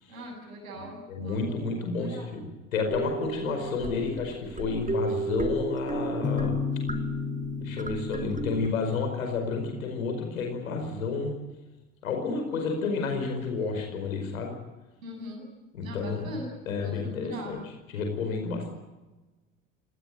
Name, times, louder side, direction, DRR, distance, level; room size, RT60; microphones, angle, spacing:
voice 1, 0.1-1.6 2.0-2.3 15.0-15.4 15.8-16.4 16.8-17.5, equal, 80° right, 1 dB, 7.8 m, -41 dB
voice 2, 0.7-6.6 7.6-11.4 12.0-14.6 15.7-16.3 16.7-18.7, left 4 dB, 80° left, 4 dB, 5.1 m, -31 dB
sound 1, 2.9-8.7, right 4 dB, 20° right, 2.7 m, -34 dB
sound 2, 6.2-9.9, left 8 dB, 25° left, 0.9 m, -34 dB
26.5 x 18.5 x 8.9 m, 1.1 s
hypercardioid pair, 60°, 40 cm